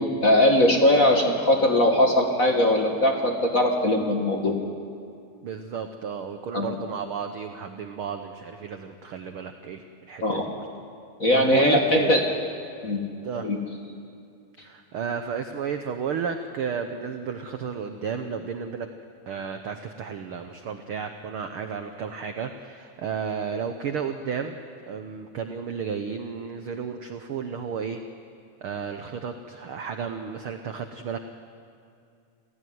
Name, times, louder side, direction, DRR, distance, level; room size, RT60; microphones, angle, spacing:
voice 1, 0.0-4.6 6.5-6.7 10.2-10.4 11.2-12.2 12.8-13.0 13.4-13.6, left 1 dB, 35° left, 2 dB, 1.6 m, -20 dB
voice 2, 5.4-10.6 11.3-12.1 13.2-13.5 14.6-18.9 19.3-24.6 24.9-28.0 28.6-31.2, right 6 dB, 70° right, 7 dB, 1.3 m, -32 dB
28.0 x 16.0 x 9.5 m, 2.4 s
omnidirectional pair, 3.6 m